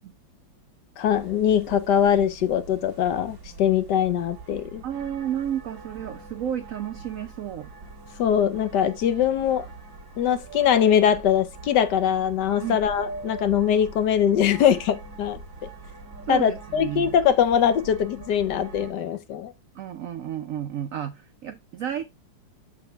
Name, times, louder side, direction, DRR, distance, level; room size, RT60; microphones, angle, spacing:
voice 1, 1.0-4.8 8.2-9.7 10.2-15.7 16.3-19.5, left 9 dB, 70° left, 1.2 m, -22 dB
sound 1, 1.0-18.9, right 3 dB, 40° right, 2.3 m, -43 dB
voice 2, 4.8-7.7 12.6-12.8 16.3-17.1 19.7-22.0, right 10 dB, 75° right, 0.7 m, -32 dB
6.8 x 5.1 x 3.4 m
omnidirectional pair, 2.1 m